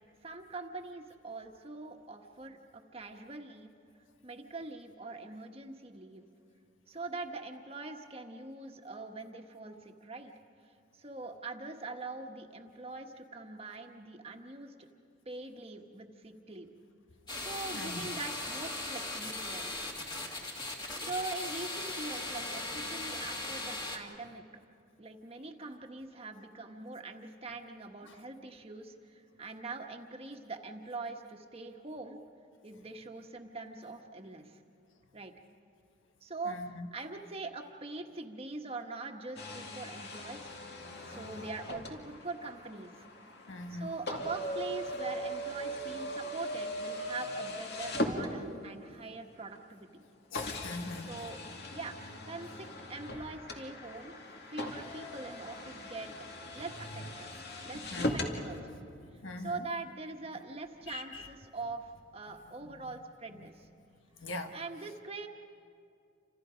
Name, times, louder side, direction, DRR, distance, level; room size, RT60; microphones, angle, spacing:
voice 1, 0.2-3.7 4.2-6.2 6.9-10.3 10.6-14.9 15.2-16.7 17.4-19.9 20.9-24.4 25.0-32.2 32.6-34.6 35.1-35.3 36.2-40.5 41.0-43.0 43.7-50.0 51.1-51.4 51.7-52.0 52.2-56.1 56.5-57.3 57.6-58.7 59.4-63.7 64.5-65.3, right 3 dB, 30° right, 4 dB, 1.4 m, -43 dB
sound 1, 17.3-24.0, left 2 dB, 25° left, 2.0 m, -38 dB
voice 2, 36.5-36.9 43.5-43.9 50.3-51.1 57.9-58.2 59.2-59.6 60.9-61.2 64.2-64.6, left 2 dB, 85° left, 6 dB, 1.5 m, -41 dB
sound 2, 39.4-48.8 49.6-49.7 50.3-58.4, equal, 55° left, 2.3 m, -39 dB
30.0 x 27.0 x 5.1 m, 2.4 s
head